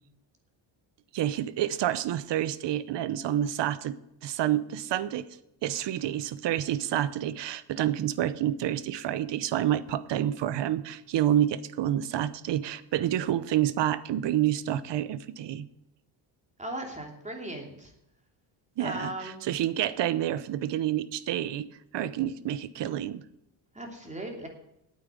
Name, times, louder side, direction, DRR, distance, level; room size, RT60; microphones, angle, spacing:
voice 1, 1.1-4.0 4.2-5.3 5.6-15.7 18.8-21.7 21.9-23.2, right 11 dB, 60° right, 16 dB, 0.9 m, -28 dB
voice 2, 16.6-17.9 18.8-19.4 23.7-24.5, right 1 dB, 15° right, 2 dB, 2.9 m, -37 dB
9.5 x 8.6 x 8.5 m, 0.84 s
cardioid pair, 120°, 48 cm